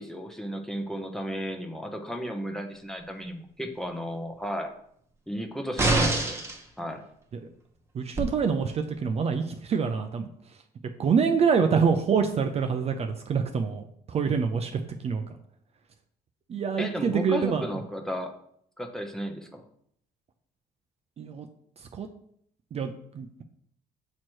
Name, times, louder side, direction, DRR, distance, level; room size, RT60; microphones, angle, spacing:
voice 1, 0.0-4.7 5.3-6.4 6.8-7.0 16.8-18.3 18.8-19.6, equal, 5° left, 3 dB, 0.8 m, -34 dB
sound 1, 5.8-6.6 8.2-8.3, right 2 dB, 15° right, 1.0 m, -24 dB
voice 2, 7.9-10.3 11.0-15.3 16.5-17.6 21.2-21.5 21.9-22.1 22.7-23.4, right 6 dB, 40° right, 5 dB, 0.5 m, -26 dB
7.3 x 3.1 x 4.5 m, 0.68 s
cardioid pair, 110°, 17 cm